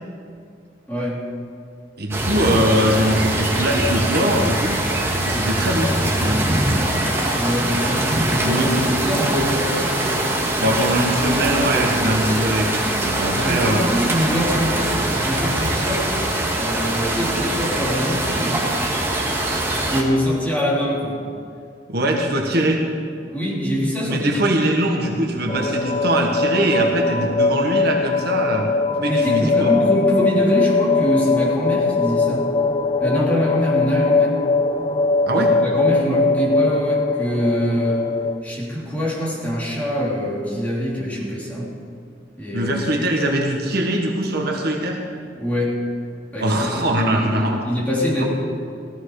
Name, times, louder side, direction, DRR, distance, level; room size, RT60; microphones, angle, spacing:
voice 1, 0.9-1.2 7.4-9.9 13.3-15.0 15.2-16.1 16.5-18.9 19.8-21.2 23.2-24.6 29.1-32.5 33.0-34.4 35.3-38.1 38.4-41.7 42.4-42.7 45.3-45.9 46.3-47.4 47.7-48.3, equal, 10° left, -6 dB, 3.4 m, -24 dB
voice 2, 2.0-4.8 5.2-6.4 8.4-8.9 10.4-13.9 21.9-22.8 24.0-28.7 29.0-29.7 35.3-35.5 42.5-45.0 46.4-47.6 48.2-48.3, right 1 dB, 60° right, 1 dB, 1.6 m, -22 dB
sound 1, 2.1-20.0, right 1 dB, 15° right, 1.9 m, -22 dB
sound 2, 25.5-38.4, left 3 dB, 30° left, 0.4 m, -21 dB
16.5 x 14.0 x 4.9 m, 2.3 s
head